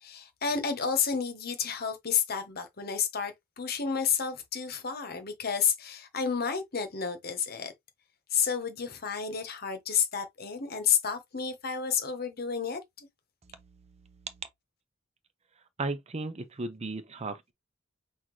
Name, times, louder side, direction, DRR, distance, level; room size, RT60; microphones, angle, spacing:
voice 1, 0.0-7.7 8.3-13.1, left 7 dB, 55° left, 1.1 m, -30 dB
voice 2, 15.8-17.5, right 2 dB, 35° right, 0.6 m, -35 dB
5.7 x 2.5 x 3.2 m
head